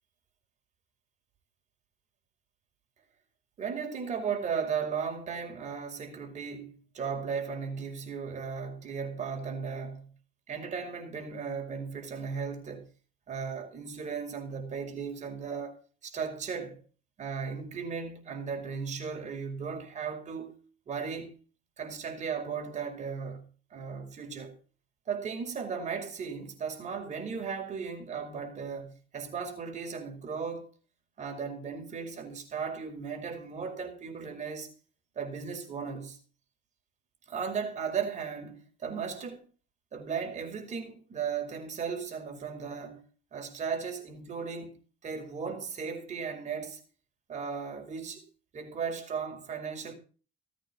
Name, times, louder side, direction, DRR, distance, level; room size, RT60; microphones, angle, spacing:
voice 1, 3.6-10.1 10.5-12.9 13.3-16.8 17.2-20.5 20.9-21.3 21.8-23.5 23.7-24.6 25.1-30.7 31.2-34.7 35.2-36.2 37.3-39.4 39.9-43.0 43.3-46.8 47.3-48.2 48.5-49.9, right 6 dB, 45° right, 5.5 m, -36 dB
17.5 x 9.1 x 6.1 m
cardioid pair, 110°, 17 cm